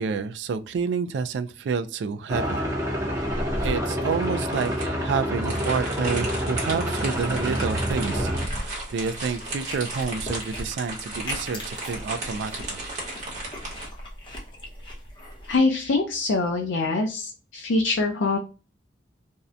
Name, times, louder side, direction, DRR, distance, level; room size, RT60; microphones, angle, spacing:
voice 1, 0.0-2.6 3.6-12.8, right 5 dB, 70° right, 0.3 m, -29 dB
sound 1, 2.3-8.4, equal, 15° right, 0.7 m, -28 dB
sound 2, 3.3-13.9, right 2 dB, 40° right, 1.0 m, -35 dB
sound 3, 7.2-15.6, equal, 25° left, 0.7 m, -38 dB
voice 2, 15.5-18.4, left 3 dB, 85° left, 0.4 m, -24 dB
2.7 x 2.1 x 2.3 m
head